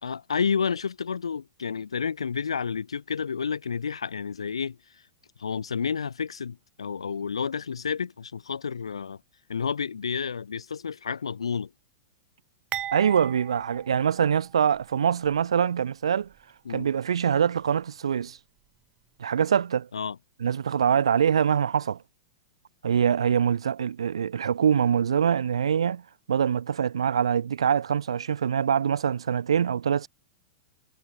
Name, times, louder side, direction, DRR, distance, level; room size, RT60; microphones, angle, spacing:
voice 1, 0.0-5.1 5.4-9.2 9.5-11.7 16.6-16.9 19.9-20.2, left 6 dB, 85° left, 3.0 m, -30 dB
sound 1, 12.7-14.9 15.2-15.4 16.3-16.4, right 11 dB, 30° right, 3.2 m, -38 dB
voice 2, 12.9-16.3 16.7-18.4 19.2-19.9 20.4-22.0 22.8-26.0 26.3-30.1, right 8 dB, 80° right, 3.2 m, -24 dB
hypercardioid pair, 105°, 3 cm